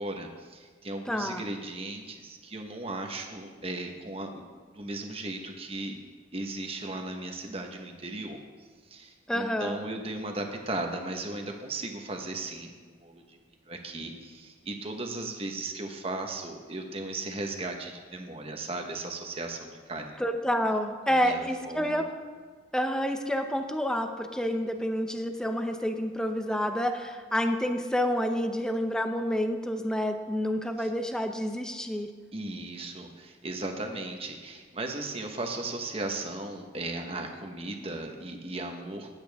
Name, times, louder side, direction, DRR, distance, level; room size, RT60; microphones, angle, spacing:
voice 1, 0.0-6.0 6.3-8.4 8.9-12.7 13.0-13.4 13.7-20.2 21.1-22.0 30.8-30.9 32.3-39.1, right 2 dB, 30° right, 3 dB, 1.2 m, -36 dB
voice 2, 1.1-1.4 9.3-9.8 20.2-22.1 22.7-32.1, equal, 5° left, 6 dB, 0.7 m, -29 dB
16.5 x 8.7 x 3.6 m, 1.5 s
head